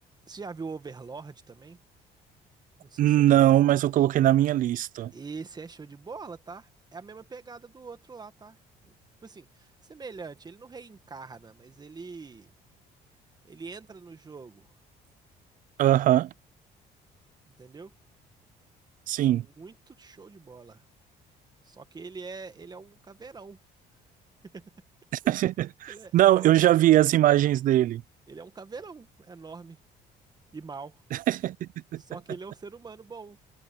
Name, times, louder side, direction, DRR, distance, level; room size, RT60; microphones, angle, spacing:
voice 1, 0.3-1.8 2.8-3.6 5.1-8.9 9.2-12.5 13.4-14.7 17.6-17.9 19.3-20.8 21.6-23.6 24.4-24.7 25.9-26.6 28.3-29.8 30.5-31.0 32.0-33.4, right 4 dB, 25° right, 1.8 m, -43 dB
voice 2, 3.0-5.1 15.8-16.3 19.1-19.4 25.1-28.0 31.1-32.0, right 13 dB, 55° right, 0.4 m, -21 dB
cardioid pair, 110°, 17 cm